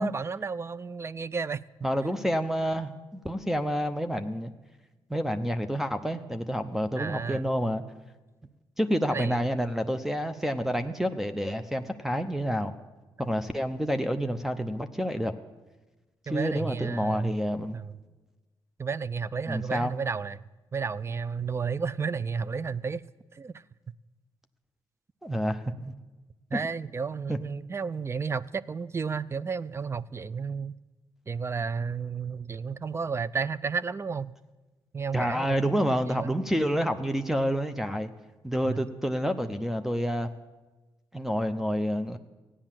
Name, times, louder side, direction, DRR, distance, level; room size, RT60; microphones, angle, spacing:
voice 1, 0.0-1.6 7.0-7.4 9.1-9.4 13.2-13.3 16.3-17.3 17.7-18.0 18.8-20.4 20.7-23.0 23.3-23.6 26.5-30.7 31.3-34.4 34.9-36.3 38.6-38.9, right 5 dB, 30° right, 19 dB, 0.4 m, -32 dB
voice 2, 1.8-4.5 5.1-7.8 8.8-12.7 13.2-15.3 16.3-17.8 19.5-19.9 25.2-25.9 26.5-26.6 27.3-27.4 35.1-38.1 38.4-40.3 41.1-42.2, equal, 5° right, 9 dB, 0.7 m, -28 dB
14.5 x 9.8 x 7.4 m, 1.2 s
cardioid pair, 80°, 9 cm